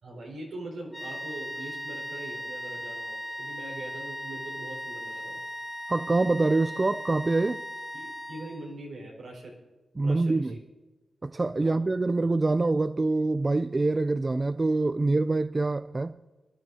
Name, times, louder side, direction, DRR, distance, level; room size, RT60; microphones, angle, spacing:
voice 1, 0.0-5.4 7.9-9.5 10.0-10.6 11.6-11.9, right 2 dB, 85° right, 4.8 m, -42 dB
sound 1, 0.9-8.8, equal, 10° left, 1.8 m, -38 dB
voice 2, 5.9-7.6 10.0-10.5 11.2-16.2, right 3 dB, 35° right, 0.4 m, -25 dB
24.5 x 12.0 x 2.8 m
cardioid pair, 55°, 0 cm